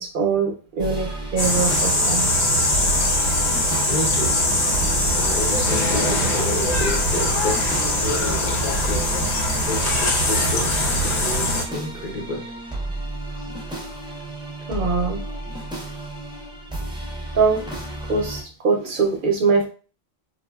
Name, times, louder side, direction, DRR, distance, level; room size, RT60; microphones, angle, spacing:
voice 1, 0.0-2.3 2.7-2.8 14.7-15.2 17.3-17.6 18.1-19.7, right 4 dB, 60° right, 2 dB, 0.6 m, -22 dB
sound 1, 0.8-18.4, right 2 dB, 5° right, 0.4 m, -33 dB
sound 2, 1.4-11.6, left 1 dB, 90° left, 1.1 m, -21 dB
voice 2, 3.9-4.4 4.8-9.1 9.7-12.5 13.3-13.5 14.7-14.8, left 2 dB, 55° left, -1 dB, 0.7 m, -31 dB
3.8 x 2.1 x 2.2 m, 0.36 s
omnidirectional pair, 1.1 m